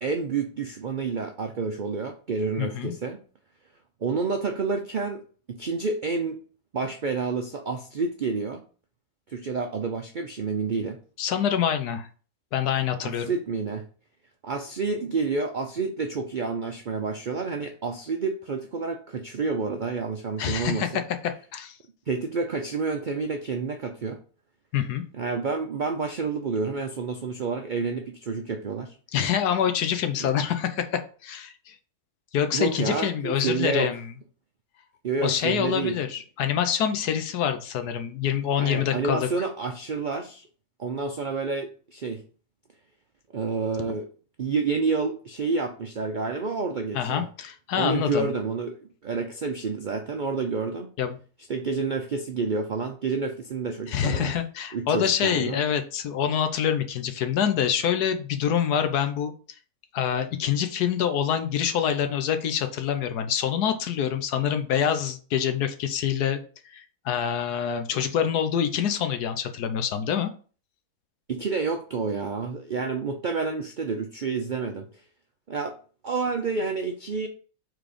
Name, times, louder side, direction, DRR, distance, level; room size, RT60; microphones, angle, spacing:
voice 1, 0.0-3.2 4.0-5.2 5.5-6.4 6.7-8.6 9.3-11.0 13.0-13.8 14.4-20.8 22.1-24.2 25.1-28.9 30.2-30.3 32.5-33.9 35.0-36.0 38.6-40.5 40.8-42.2 43.3-44.1 44.4-47.3 47.7-50.9 51.5-54.3 54.7-55.6 71.3-74.9 75.5-75.8 76.0-77.3, right 4 dB, 70° right, 6 dB, 0.4 m, -29 dB
voice 2, 2.6-2.9 11.2-12.1 12.5-13.3 20.4-21.8 24.7-25.0 29.1-31.7 32.3-34.1 35.2-39.3 46.9-48.3 51.0-51.2 53.9-59.3 59.9-66.4 66.7-70.3, left 8 dB, 85° left, 8 dB, 1.4 m, -26 dB
4.7 x 4.1 x 5.0 m, 0.39 s
omnidirectional pair, 1.6 m